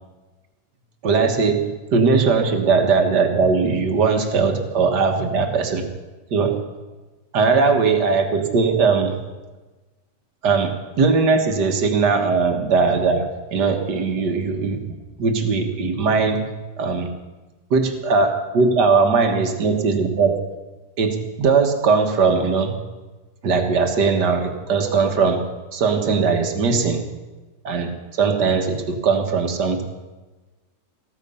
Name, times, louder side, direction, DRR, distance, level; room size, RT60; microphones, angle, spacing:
voice 1, 1.0-5.8 6.3-6.6 7.3-9.2 10.4-14.9 15.2-16.5 16.8-17.1 17.7-20.4 21.0-22.8 23.4-25.4 25.7-27.1 27.6-29.8, right 4 dB, 75° right, 5 dB, 2.1 m, -19 dB
15.0 x 13.5 x 5.6 m, 1.2 s
omnidirectional pair, 1.8 m